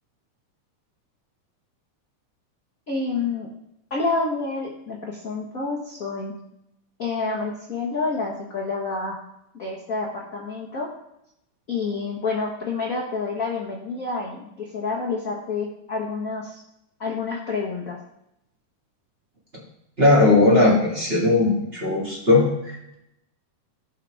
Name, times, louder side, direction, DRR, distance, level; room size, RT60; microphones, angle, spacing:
voice 1, 2.9-3.5 3.9-6.3 7.0-9.2 9.5-10.9 11.7-16.6 17.0-18.0, left 4 dB, 45° left, -4 dB, 1.1 m, -28 dB
voice 2, 20.0-22.9, left 2 dB, 20° right, -5 dB, 2.1 m, -18 dB
17.5 x 5.8 x 3.6 m, 0.80 s
omnidirectional pair, 3.8 m